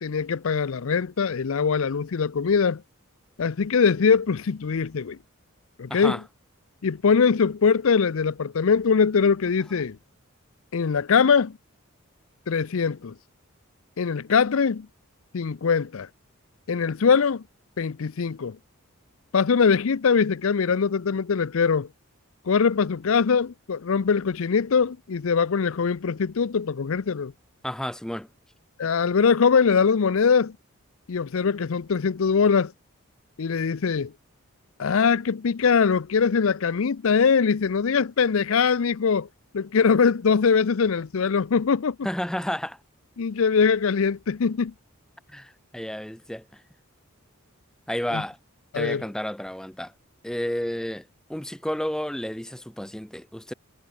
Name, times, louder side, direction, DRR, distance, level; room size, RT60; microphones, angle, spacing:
voice 1, 0.0-2.8 3.4-5.2 5.8-6.2 6.8-10.0 10.7-11.6 12.5-13.1 14.0-14.9 15.3-16.1 16.7-17.4 17.8-18.6 19.3-21.9 22.5-27.3 28.8-30.5 31.1-32.7 33.4-34.1 34.8-39.3 39.5-42.0 43.2-44.7 48.1-48.2 48.7-49.0, left 5 dB, 65° left, 0.5 m, -22 dB
voice 2, 5.9-6.2 27.6-28.3 42.0-42.8 45.3-46.6 47.9-48.4 48.7-49.9 50.2-53.5, equal, 5° left, 0.4 m, -31 dB
head